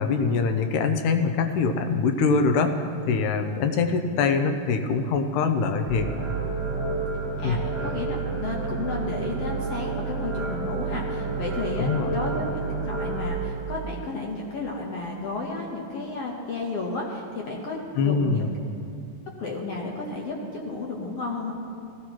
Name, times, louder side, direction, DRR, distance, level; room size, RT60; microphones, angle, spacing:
voice 1, 0.0-6.1 7.4-7.6 11.8-12.1 18.0-18.6, left 4 dB, 80° left, 6 dB, 2.2 m, -24 dB
sound 1, 5.9-13.2, right 4 dB, 15° right, 3.7 m, -30 dB
voice 2, 7.4-12.5 12.8-17.8 18.0-18.6 19.4-21.5, left 3 dB, 65° left, -1 dB, 1.7 m, -32 dB
17.0 x 14.0 x 3.0 m, 2.6 s
omnidirectional pair, 3.7 m